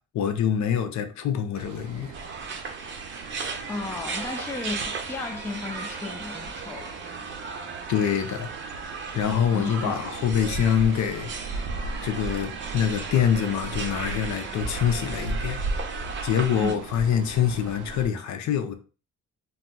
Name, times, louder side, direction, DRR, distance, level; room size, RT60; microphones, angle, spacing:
voice 1, 0.1-2.2 7.9-8.5 9.1-11.7 12.0-15.6 16.2-18.7, left 8 dB, 70° left, 0.5 m, -25 dB
sound 1, 1.5-18.1, right 3 dB, 90° right, 0.5 m, -37 dB
sound 2, 2.1-16.7, right 4 dB, 40° right, 0.6 m, -36 dB
voice 2, 3.7-7.0 9.5-10.0 16.6-16.8, left 3 dB, 10° left, 0.3 m, -34 dB
4.0 x 2.0 x 2.2 m
cardioid pair, 90°, 30 cm